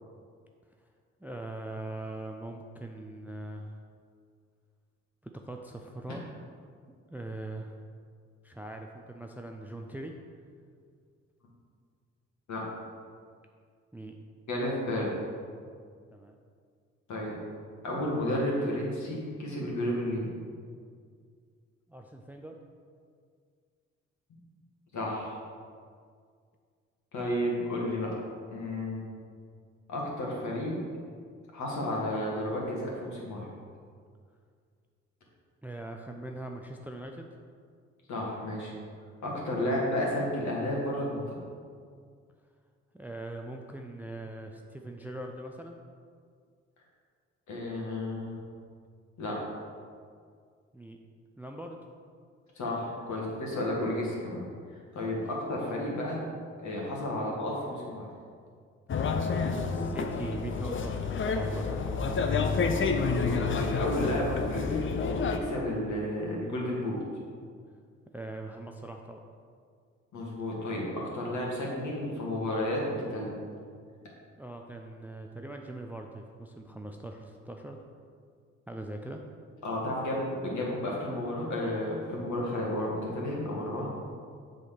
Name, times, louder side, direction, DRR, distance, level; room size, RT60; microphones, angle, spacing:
voice 1, 1.2-3.8 5.2-6.2 7.1-7.8 8.4-10.1 13.9-14.1 16.1-16.3 21.9-22.6 35.6-37.3 42.9-45.8 50.7-51.0 51.4-51.8 54.9-55.2 57.1-57.3 59.4-62.3 68.1-69.2 74.4-77.8 78.7-79.2, right 1 dB, 5° right, 3 dB, 0.6 m, -41 dB
voice 2, 14.5-15.2 17.1-17.4 17.8-20.3 24.9-25.4 27.1-28.1 28.5-29.0 29.9-30.8 31.5-33.5 38.1-38.7 39.2-41.4 47.5-48.4 49.2-49.4 52.6-54.4 54.7-56.2 56.6-58.1 62.8-64.8 65.3-67.0 70.1-73.3 79.6-83.9, left 1 dB, 50° left, -3 dB, 2.2 m, -32 dB
sound 1, 58.9-65.4, left 4 dB, 35° left, 0.7 m, -29 dB
7.4 x 4.0 x 6.6 m, 2.1 s
figure-of-eight pair, 40°, 36 cm